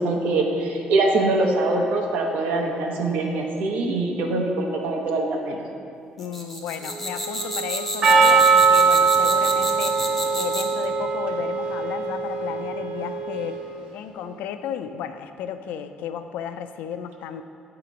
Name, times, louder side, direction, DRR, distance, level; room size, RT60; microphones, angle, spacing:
voice 1, 0.0-5.6, right 2 dB, 75° right, 1 dB, 0.8 m, -23 dB
voice 2, 6.2-10.0 10.4-13.6 13.9-17.4, left 8 dB, 80° left, 9 dB, 0.3 m, -33 dB
sound 1, 6.2-10.8, left 1 dB, 5° left, 0.6 m, -30 dB
sound 2, 6.8-13.8, right 6 dB, 55° right, 1.1 m, -35 dB
Percussion, 8.0-13.0, right 5 dB, 40° right, 0.6 m, -20 dB
8.1 x 2.9 x 5.0 m, 2.6 s
cardioid pair, 175°, 3 cm